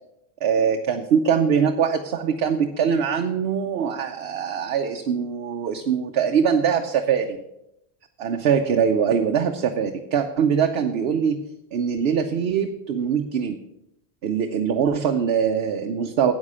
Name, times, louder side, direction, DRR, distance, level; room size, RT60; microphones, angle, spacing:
voice 1, 0.4-7.4 8.2-11.4 11.7-13.6 14.2-16.3, right 7 dB, 75° right, 5 dB, 0.9 m, -22 dB
9.7 x 8.2 x 5.5 m, 0.87 s
omnidirectional pair, 1.1 m